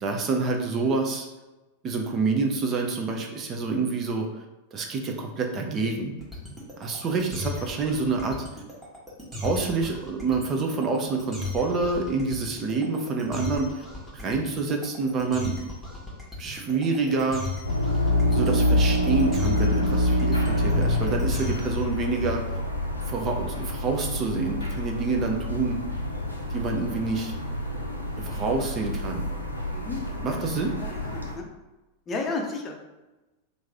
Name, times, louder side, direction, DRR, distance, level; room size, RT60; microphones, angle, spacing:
voice 1, 0.0-1.3 1.8-4.4 4.7-6.1 6.8-8.4 9.4-13.8 14.1-15.6 16.4-17.4 18.3-22.4 23.1-25.8 26.5-27.3 28.2-29.3 29.9-30.7, right 4 dB, 30° right, 2 dB, 0.5 m, -27 dB
sound 1, 6.2-21.8, left 2 dB, 5° right, 1.2 m, -36 dB
sound 2, 17.6-31.4, left 1 dB, 85° left, 0.5 m, -27 dB
voice 2, 29.7-31.5 32.1-32.9, left 3 dB, 25° left, 1 dB, 0.6 m, -34 dB
3.1 x 2.6 x 3.4 m, 1.1 s
figure-of-eight pair, 90°, 0 cm